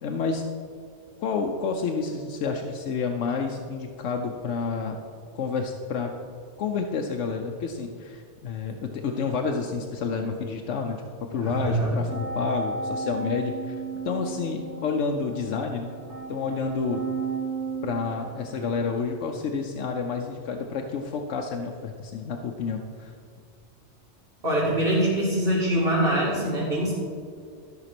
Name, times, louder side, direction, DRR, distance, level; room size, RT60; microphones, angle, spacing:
voice 1, 0.0-0.4 1.2-5.0 5.3-6.1 6.6-11.0 11.3-13.8 14.0-15.9 16.3-17.0 17.8-23.1, left 5 dB, 85° left, 3 dB, 1.1 m, -29 dB
voice 2, 11.4-11.9 24.4-27.0, right 1 dB, 55° right, -8 dB, 2.5 m, -24 dB
sound 1, 12.1-19.0, right 4 dB, 90° right, 3.0 m, -34 dB
13.0 x 5.9 x 5.9 m, 2.2 s
omnidirectional pair, 1.2 m